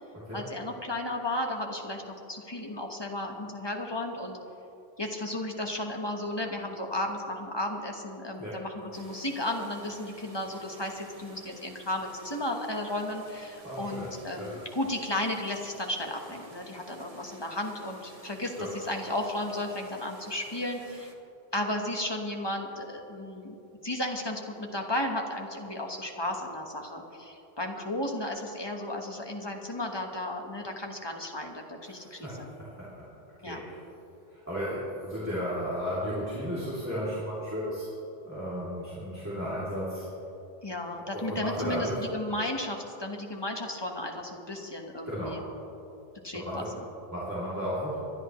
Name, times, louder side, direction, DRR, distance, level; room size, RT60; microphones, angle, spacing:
voice 1, 0.3-2.0 2.3-4.4 5.0-21.1 21.5-23.5 23.8-32.5 33.4-33.6 40.6-45.4 46.2-46.6, left 1 dB, 25° left, 2 dB, 1.3 m, -34 dB
sound 1, 8.9-21.1, right 2 dB, 35° right, 1.2 m, -53 dB
voice 2, 13.6-14.0 14.4-14.5 18.6-18.7 31.8-32.9 33.5-33.8 34.3-37.9 38.2-40.1 41.1-42.0 45.0-45.4 46.4-46.8 47.1-48.0, equal, 15° right, -9 dB, 2.8 m, -34 dB
26.0 x 11.0 x 3.1 m, 2.9 s
omnidirectional pair, 1.1 m